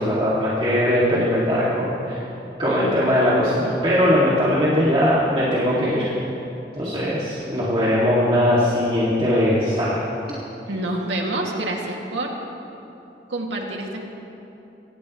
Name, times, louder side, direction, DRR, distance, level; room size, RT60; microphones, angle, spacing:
voice 1, 0.0-2.2 2.6-6.1 6.8-10.0, equal, 30° right, -9 dB, 2.5 m, -20 dB
voice 2, 10.7-12.3 13.3-14.0, right 1 dB, 90° right, -1 dB, 2.4 m, -27 dB
25.0 x 18.0 x 3.2 m, 2.9 s
head